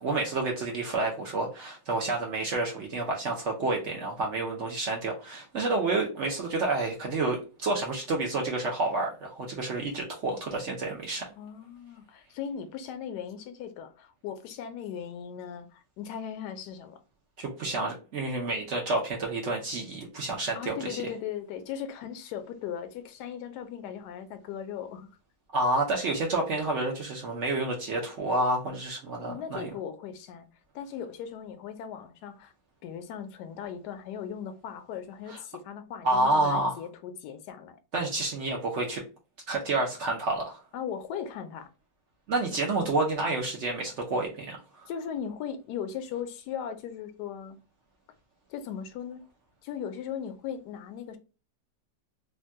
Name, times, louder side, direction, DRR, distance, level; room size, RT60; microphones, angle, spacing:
voice 1, 0.0-11.2 17.4-21.0 25.5-29.7 36.0-36.8 37.9-39.0 39.5-40.6 42.3-44.6, right 2 dB, 65° right, 0.7 m, -29 dB
voice 2, 11.4-17.0 20.5-25.1 29.2-30.5 30.7-32.5 32.8-37.8 40.7-41.7 44.8-47.6 48.5-49.2 49.6-51.2, left 8 dB, 75° left, 1.1 m, -38 dB
3.4 x 2.2 x 2.6 m
omnidirectional pair, 2.0 m